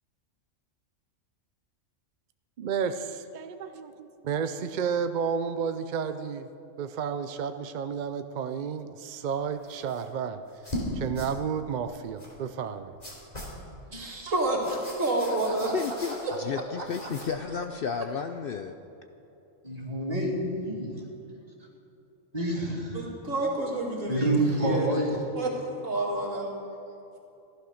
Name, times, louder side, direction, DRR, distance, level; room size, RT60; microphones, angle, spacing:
voice 1, 2.6-6.5 6.8-12.9, right 6 dB, 60° right, 9 dB, 0.5 m, -32 dB
sound 1, 9.6-10.1 10.5-10.9 11.1-11.3 12.2-12.3 13.0-13.6 14.3-16.5 16.8-17.4, equal, 30° left, 3.1 m, -40 dB
voice 2, 13.9-15.7 16.2-16.3 22.9-24.9 25.4-26.5, right 2 dB, 75° right, -1 dB, 2.6 m, -29 dB
voice 3, 15.7-18.8, left 6 dB, 60° left, 7 dB, 0.6 m, -32 dB
voice 4, 16.8-17.1 19.6-21.0 22.3-23.1 24.1-25.2, right 1 dB, 30° right, -2 dB, 2.6 m, -28 dB
15.0 x 11.5 x 6.4 m, 2.8 s
omnidirectional pair, 1.3 m